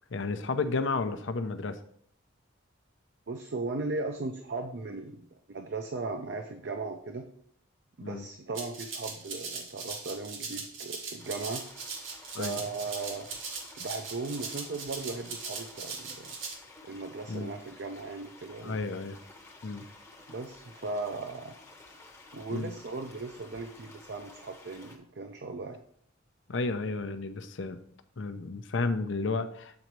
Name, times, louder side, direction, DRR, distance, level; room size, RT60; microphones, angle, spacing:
voice 1, 0.1-1.8 8.0-8.3 12.3-12.6 17.3-17.5 18.6-19.2 19.6-19.9 22.5-22.7 26.5-27.8 28.2-29.8, left 3 dB, 65° left, 10 dB, 0.6 m, -32 dB
voice 2, 3.3-7.2 8.0-11.6 12.4-13.3 13.8-16.3 16.8-18.8 20.3-21.5 22.3-25.8, right 3 dB, 55° right, 4 dB, 0.5 m, -37 dB
Rattle (instrument), 8.5-16.5, right 4 dB, 75° right, 1.4 m, -39 dB
sound 1, 11.2-25.0, left 2 dB, 15° left, 0.8 m, -53 dB
7.8 x 4.0 x 4.6 m, 0.65 s
head